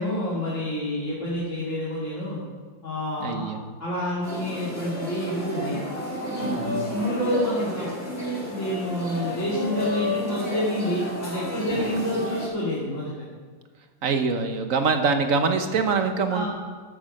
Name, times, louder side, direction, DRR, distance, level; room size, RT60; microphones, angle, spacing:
voice 1, 0.0-2.4 2.8-3.5 3.8-5.8 6.2-13.1 16.3-16.4, equal, 40° left, -8 dB, 2.7 m, -28 dB
voice 2, 3.2-3.6 6.4-7.0 11.7-11.8 14.0-16.4, right 4 dB, 50° right, 7 dB, 1.2 m, -24 dB
sound 1, 4.2-12.5, left 1 dB, 55° left, 5.4 m, -32 dB
13.5 x 7.5 x 6.5 m, 1.5 s
omnidirectional pair, 2.0 m